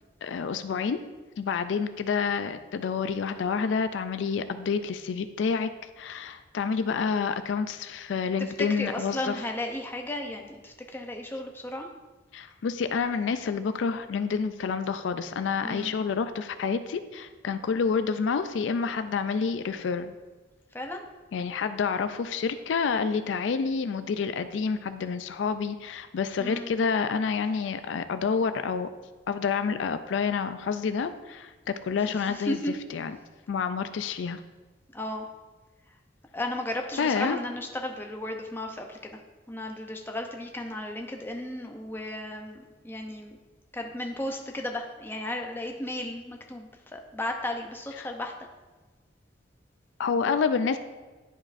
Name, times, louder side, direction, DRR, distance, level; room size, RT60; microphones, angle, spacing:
voice 1, 0.2-1.0 1.4-5.7 6.0-9.4 12.3-20.1 21.3-28.9 29.3-32.6 32.9-33.2 33.5-34.4 37.0-37.4 48.0-48.1 50.0-50.8, left 5 dB, 80° left, 10 dB, 0.4 m, -28 dB
voice 2, 8.6-11.9 15.6-15.9 20.7-21.0 26.4-26.7 32.2-32.7 34.9-35.3 36.3-39.2 39.5-43.4 43.7-48.3, left 1 dB, 10° left, 2 dB, 0.6 m, -34 dB
10.5 x 4.8 x 2.5 m, 1.3 s
head